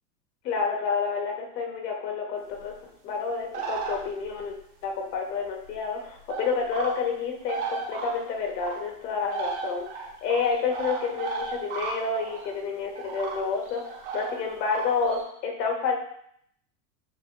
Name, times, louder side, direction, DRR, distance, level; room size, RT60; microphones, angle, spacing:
voice 1, 0.4-2.7 3.0-4.5 4.8-16.0, left 5 dB, 85° left, 1 dB, 1.4 m, -29 dB
sound 1, 3.5-4.4 5.7-5.8 6.3-7.1 7.4-8.8 9.3-12.5 13.0-15.2, right 5 dB, 45° right, 0.9 m, -34 dB
7.4 x 2.6 x 2.5 m, 0.69 s
supercardioid pair, 180°, 48 cm